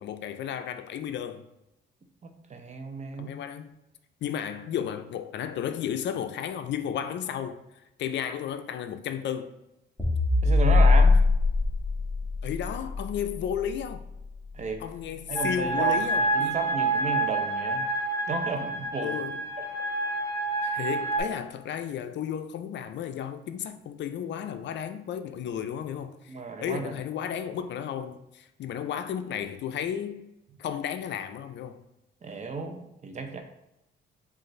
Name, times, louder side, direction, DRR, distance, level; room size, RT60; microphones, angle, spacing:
voice 1, 0.0-1.4 3.2-3.7 4.2-9.5 12.4-14.0 14.8-16.6 19.0-19.4 20.6-30.2 30.6-31.8, left 9 dB, 65° left, 0.4 m, -33 dB
voice 2, 2.2-3.4 10.4-11.2 14.5-14.8 15.3-17.9 18.3-19.1 26.3-26.9 32.2-33.4, right 4 dB, 35° right, 0.6 m, -33 dB
sound 1, 10.0-14.5, left 3 dB, 5° right, 1.4 m, -22 dB
sound 2, 15.4-21.2, right 3 dB, 15° left, 0.7 m, -28 dB
5.0 x 2.5 x 3.1 m
cardioid pair, 90°, 20 cm